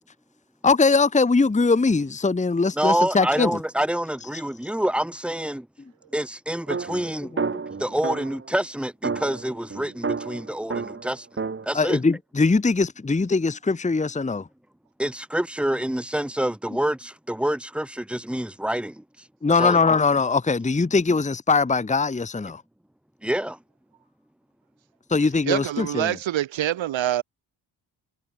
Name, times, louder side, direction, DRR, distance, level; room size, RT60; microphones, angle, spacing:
voice 1, 0.6-3.5 11.7-14.5 19.4-22.6 25.1-26.2, left 4 dB, 15° left, 1.1 m, -21 dB
voice 2, 2.8-5.7 6.1-11.3 11.6-12.0 15.0-19.0 19.6-20.0 23.2-23.6, right 1 dB, ahead, 2.0 m, -27 dB
sound 1, 6.7-8.5 9.0-11.7, right 4 dB, 25° right, 1.7 m, -30 dB
voice 3, 25.5-27.2, right 12 dB, 85° right, 2.9 m, -25 dB
cardioid pair, 75°, 45 cm